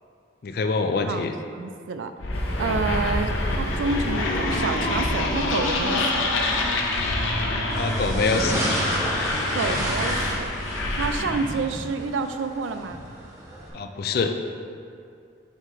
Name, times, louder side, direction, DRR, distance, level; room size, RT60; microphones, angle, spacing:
voice 1, 0.4-1.3 7.7-8.7 13.7-14.3, left 4 dB, 50° left, 6 dB, 0.4 m, -25 dB
voice 2, 1.1-2.1 2.6-6.3 9.5-10.5 10.9-13.0, right 4 dB, 80° right, 8 dB, 0.4 m, -29 dB
sound 1, 2.2-11.6, left 2 dB, 90° left, 0.7 m, -26 dB
sound 2, 2.3-9.5, equal, 35° left, 1.1 m, -38 dB
sound 3, 7.7-13.7, right 1 dB, 15° right, 0.8 m, -32 dB
6.2 x 4.3 x 3.8 m, 2.4 s
head